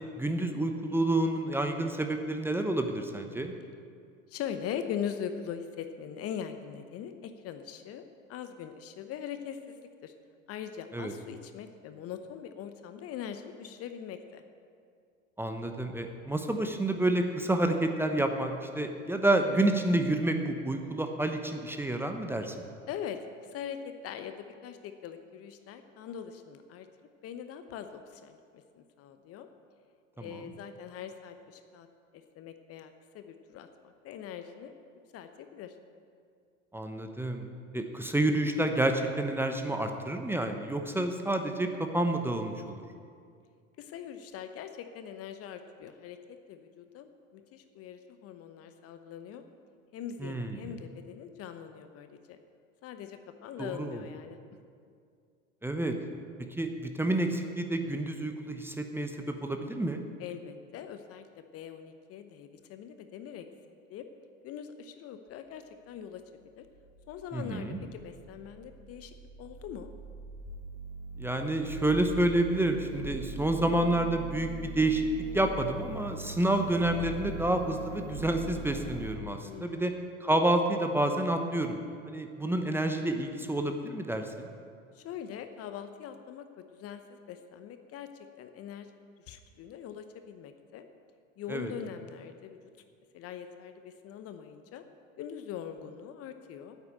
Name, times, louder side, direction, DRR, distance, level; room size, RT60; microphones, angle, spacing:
voice 1, 0.0-3.5 10.9-11.1 15.4-22.5 30.2-30.4 36.7-37.5 37.7-42.8 50.2-50.7 53.6-54.0 55.6-55.9 56.6-60.0 67.3-67.8 71.2-75.1 75.3-79.9 80.2-81.8 82.0-84.5 91.5-91.7, right 1 dB, 5° right, 5 dB, 0.9 m, -29 dB
voice 2, 4.3-10.1 10.5-14.4 22.9-23.2 23.5-26.9 27.2-29.5 30.2-31.9 32.1-34.7 35.1-35.7 43.8-49.4 49.9-52.4 52.8-54.4 60.2-61.3 61.5-63.5 63.9-64.1 64.4-66.2 66.6-66.7 67.1-69.9 79.4-80.0 84.9-88.1 88.4-88.9 89.3-90.9 91.4-92.6 93.1-94.8 95.2-96.8, left 8 dB, 35° left, 8 dB, 0.8 m, -42 dB
sound 1, 65.8-79.2, right 2 dB, 55° right, 2.1 m, -42 dB
9.4 x 8.2 x 8.8 m, 2.3 s
figure-of-eight pair, 80°, 39 cm